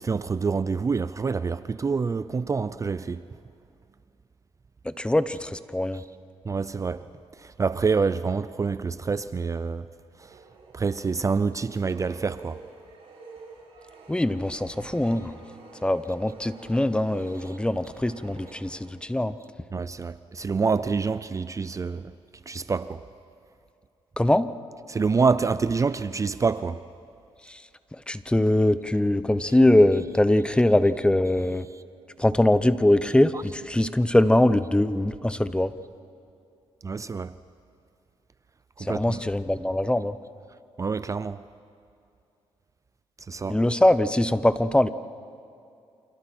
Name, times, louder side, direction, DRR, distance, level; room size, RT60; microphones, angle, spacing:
voice 1, 0.0-3.2 6.4-7.1 7.4-9.9 10.2-10.3 10.7-12.6 19.7-22.1 22.5-23.0 24.9-26.8 36.8-37.4 38.8-39.2 40.8-41.4 43.3-43.6, right 5 dB, 30° right, 0.5 m, -27 dB
voice 2, 4.8-6.0 14.1-15.3 15.8-19.4 24.2-24.5 27.5-27.6 27.9-31.7 32.2-35.7 38.8-40.2 43.5-44.9, left 1 dB, 10° left, 0.8 m, -22 dB
sound 1, 10.2-19.3, right 4 dB, 70° right, 6.1 m, -49 dB
29.5 x 27.5 x 4.5 m
cardioid pair, 85°, 11 cm